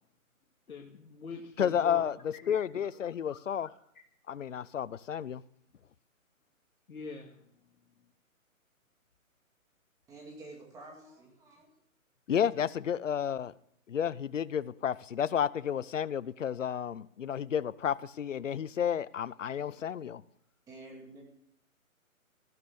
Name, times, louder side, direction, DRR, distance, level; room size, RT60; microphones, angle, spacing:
voice 1, 0.7-2.1 2.5-2.6 6.9-7.4, left 4 dB, 80° left, 1 dB, 2.2 m, -43 dB
voice 2, 1.6-3.7 4.3-5.4 12.3-13.5 13.9-20.2, left 8 dB, 60° left, 18 dB, 0.8 m, -31 dB
voice 3, 10.1-11.8 20.7-21.2, right 2 dB, 10° right, -1 dB, 2.5 m, -49 dB
15.0 x 12.0 x 7.0 m, 0.72 s
hypercardioid pair, 160°, 42 cm